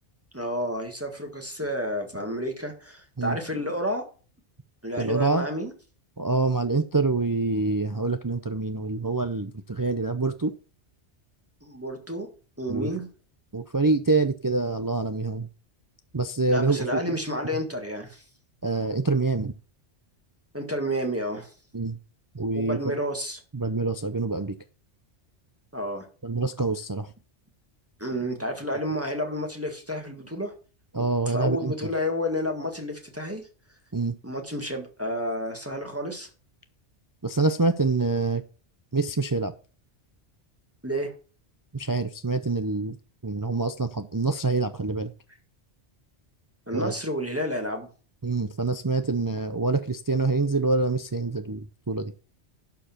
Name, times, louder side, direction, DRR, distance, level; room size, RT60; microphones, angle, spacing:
voice 1, 0.3-4.0 4.8-5.7 11.6-12.3 12.6-13.1 16.5-18.2 20.5-21.5 22.5-23.4 25.7-26.1 28.0-30.5 31.0-33.4 34.2-36.3 40.8-41.1 46.7-47.9, equal, 10° right, 3 dB, 1.6 m, -30 dB
voice 2, 5.0-5.5 6.2-10.5 12.7-12.9 13.5-15.5 16.1-17.0 18.6-19.5 21.7-22.0 22.3-23.0 23.5-24.6 26.2-27.1 30.9-31.7 33.9-34.2 37.2-38.4 38.9-39.5 41.7-43.0 43.2-45.1 46.7-46.9 48.2-52.1, right 3 dB, 30° right, 9 dB, 0.4 m, -26 dB
11.5 x 4.8 x 5.8 m, 0.38 s
omnidirectional pair, 1.2 m